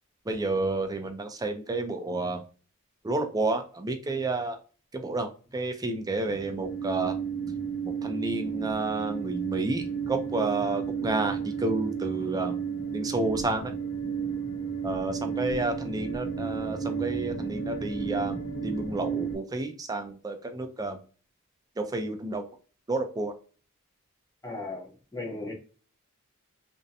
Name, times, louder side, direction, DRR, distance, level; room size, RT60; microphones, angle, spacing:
voice 1, 0.3-2.4 3.0-4.6 4.9-7.2 7.8-12.6 12.9-13.7 14.8-18.4 18.6-21.0 21.8-22.4 22.9-23.3, right 2 dB, 15° right, 0.4 m, -30 dB
sound 1, 6.2-19.4, right 6 dB, 55° left, 0.6 m, -32 dB
voice 2, 24.4-25.5, left 2 dB, 15° left, 0.7 m, -36 dB
2.6 x 2.1 x 2.6 m
head